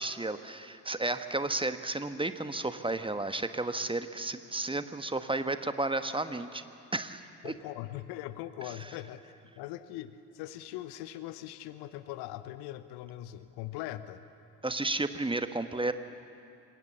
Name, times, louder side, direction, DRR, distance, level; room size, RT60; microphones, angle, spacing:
voice 1, 0.0-6.6 6.9-7.5 14.6-15.9, right 2 dB, 10° right, 10 dB, 1.3 m, -32 dB
voice 2, 7.4-14.2, left 14 dB, 60° left, 13 dB, 1.0 m, -41 dB
27.0 x 22.0 x 7.2 m, 2.6 s
figure-of-eight pair, 45°, 44 cm